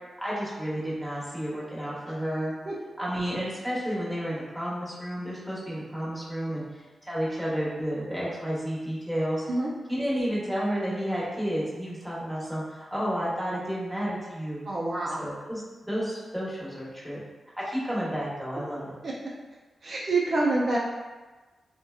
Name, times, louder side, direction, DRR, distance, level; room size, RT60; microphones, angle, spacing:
voice 1, 0.2-2.5 3.0-6.8 7.1-9.4 9.9-14.6 15.1-17.2 17.7-18.9, equal, ahead, -8 dB, 1.0 m, -31 dB
voice 2, 14.7-15.2 19.8-20.8, right 2 dB, 60° right, -4 dB, 0.4 m, -26 dB
2.7 x 2.1 x 2.3 m, 1.2 s
cardioid pair, 55°, 0 cm